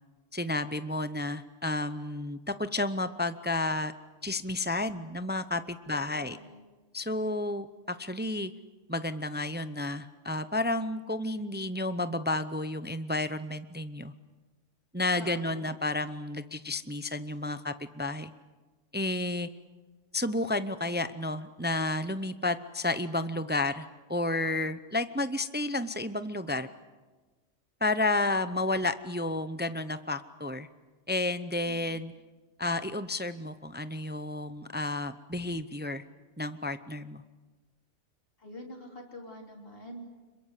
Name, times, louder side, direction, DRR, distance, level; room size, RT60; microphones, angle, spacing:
voice 1, 0.3-3.9 4.2-6.4 6.9-8.5 8.9-14.1 14.9-18.3 18.9-19.5 20.1-26.7 27.8-30.7 31.1-32.1 32.6-36.0 36.4-37.2, left 2 dB, 10° right, 12 dB, 0.5 m, -31 dB
voice 2, 5.9-6.6 15.1-15.7 38.4-40.0, equal, 45° left, 0 dB, 3.7 m, -46 dB
26.0 x 22.5 x 8.3 m, 1.3 s
omnidirectional pair, 1.3 m